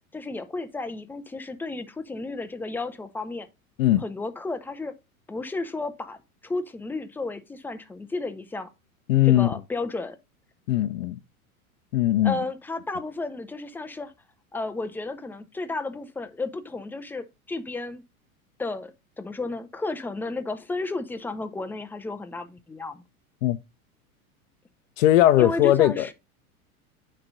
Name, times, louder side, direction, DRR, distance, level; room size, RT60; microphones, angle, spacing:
voice 1, 0.1-3.5 4.0-4.9 5.3-6.2 6.4-8.7 9.2-10.2 12.2-14.1 14.5-18.0 18.6-18.9 19.2-23.0 25.4-26.1, left 3 dB, 5° left, 0.5 m, -33 dB
voice 2, 9.1-9.5 10.7-11.2 11.9-12.4 23.4-23.6 25.0-26.1, left 13 dB, 60° left, 0.6 m, -19 dB
9.5 x 3.3 x 3.7 m
figure-of-eight pair, 90°, 44 cm